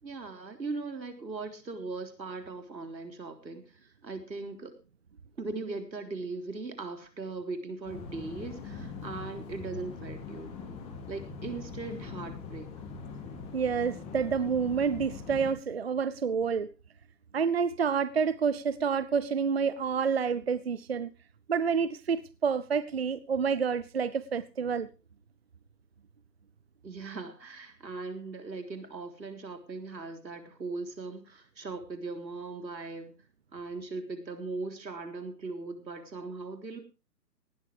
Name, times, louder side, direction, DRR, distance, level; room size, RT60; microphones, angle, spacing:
voice 1, 0.0-4.7 5.4-10.5 11.1-12.7 26.8-33.2 33.5-36.8, right 3 dB, 90° right, 3.7 m, -39 dB
sound 1, 7.8-15.5, left 5 dB, 10° left, 2.6 m, -42 dB
voice 2, 13.5-16.7 17.3-21.1 21.5-24.9, right 6 dB, 40° right, 0.8 m, -28 dB
18.0 x 13.0 x 3.3 m
hypercardioid pair, 160°, 50 cm